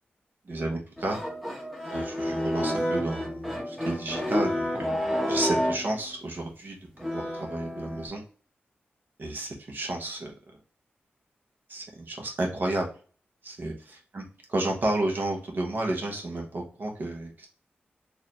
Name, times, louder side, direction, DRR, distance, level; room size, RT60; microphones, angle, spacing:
voice 1, 0.4-1.2 1.9-5.0 5.3-8.2 9.2-10.3 11.7-12.9 13.4-13.7 14.1-14.2 14.5-17.5, right 2 dB, 55° right, 1 dB, 1.1 m, -31 dB
sound 1, 1.0-6.0 7.0-8.1, equal, ahead, 0.9 m, -30 dB
3.9 x 2.7 x 3.0 m, 0.39 s
wide cardioid pair, 105°, 4 cm